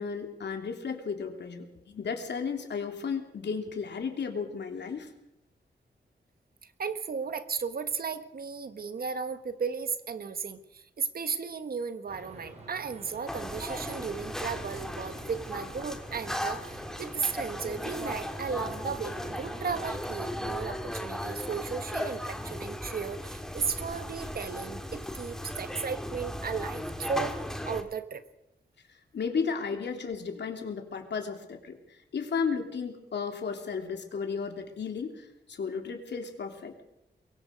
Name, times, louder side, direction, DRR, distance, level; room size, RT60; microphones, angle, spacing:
voice 1, 0.0-5.1 28.9-36.7, left 5 dB, 80° left, 4 dB, 3.1 m, -34 dB
voice 2, 6.8-27.4 27.6-28.2, right 5 dB, 60° right, 10 dB, 1.4 m, -35 dB
sound 1, 12.1-19.9, right 2 dB, 40° right, 4.5 m, -47 dB
sound 2, 13.3-27.8, left 1 dB, 5° left, 1.8 m, -37 dB
23.5 x 23.0 x 5.3 m, 0.84 s
wide cardioid pair, 180°, 18 cm